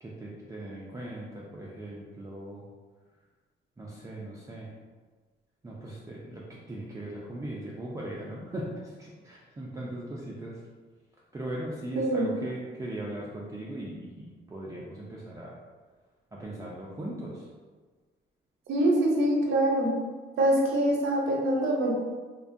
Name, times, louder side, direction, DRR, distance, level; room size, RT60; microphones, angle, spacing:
voice 1, 0.0-2.6 3.8-4.7 5.6-10.6 11.3-15.6 16.3-17.5, right 1 dB, 15° right, -5 dB, 0.4 m, -39 dB
voice 2, 12.0-12.3 18.7-19.9 20.4-21.9, right 1 dB, 80° right, -2 dB, 0.6 m, -24 dB
2.6 x 2.2 x 2.5 m, 1.4 s
cardioid pair, 90°, 20 cm